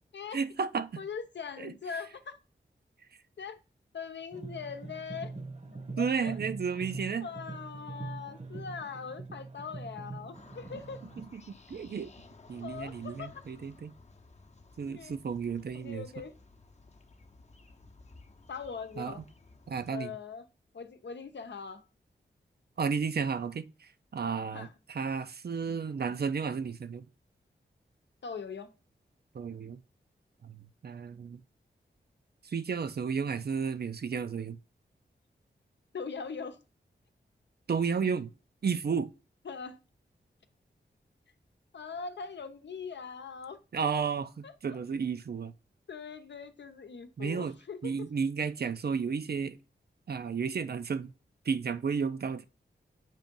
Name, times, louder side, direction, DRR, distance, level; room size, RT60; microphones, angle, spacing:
voice 1, 0.3-1.0 1.6-1.7 6.0-7.3 11.2-12.1 12.5-13.9 14.8-16.1 19.0-19.2 19.7-20.1 22.8-27.0 29.3-29.8 30.4-31.4 32.4-34.6 37.7-38.3 38.6-39.1 43.7-45.5 47.2-47.5 47.8-49.6 50.1-51.1 51.5-52.4, right 6 dB, 55° right, 0.6 m, -33 dB
voice 2, 1.0-2.4 3.4-3.6 3.9-5.3 6.0-6.4 7.2-11.0 12.6-13.4 14.8-15.1 15.7-16.3 18.5-19.2 19.9-20.4 20.7-21.8 24.5-24.7 28.2-28.7 35.9-36.6 39.4-39.8 41.7-43.6 44.4-44.8 45.9-48.1, left 5 dB, 70° left, 0.8 m, -41 dB
sound 1, 4.3-11.3, right 3 dB, 35° right, 0.9 m, -43 dB
sound 2, 10.3-19.9, left 3 dB, 35° left, 0.8 m, -56 dB
7.4 x 2.5 x 5.3 m
cardioid pair, 50°, 19 cm